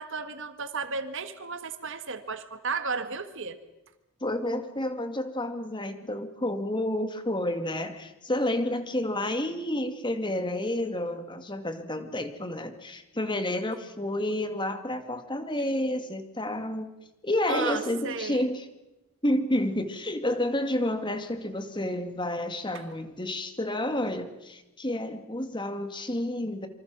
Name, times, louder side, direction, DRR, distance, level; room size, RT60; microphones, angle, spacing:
voice 1, 0.0-3.6 17.5-18.4 22.7-22.8, right 4 dB, 60° right, 10 dB, 1.7 m, -33 dB
voice 2, 4.2-16.9 17.2-18.7 19.2-26.7, left 1 dB, 20° left, 8 dB, 2.1 m, -30 dB
27.0 x 25.5 x 6.2 m, 0.97 s
head